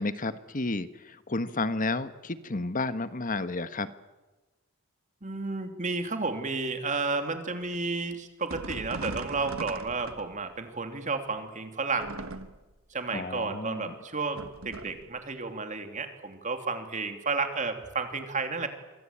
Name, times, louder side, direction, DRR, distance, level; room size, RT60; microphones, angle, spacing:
voice 1, 0.0-3.9 13.1-13.9, left 2 dB, 35° left, 12 dB, 1.3 m, -31 dB
voice 2, 5.2-12.1 12.9-18.7, right 4 dB, 35° right, 6 dB, 3.0 m, -32 dB
sound 1, 8.5-10.6 12.0-12.8 14.4-15.1, right 2 dB, 65° right, 1.7 m, -39 dB
27.5 x 24.5 x 8.7 m, 1.2 s
head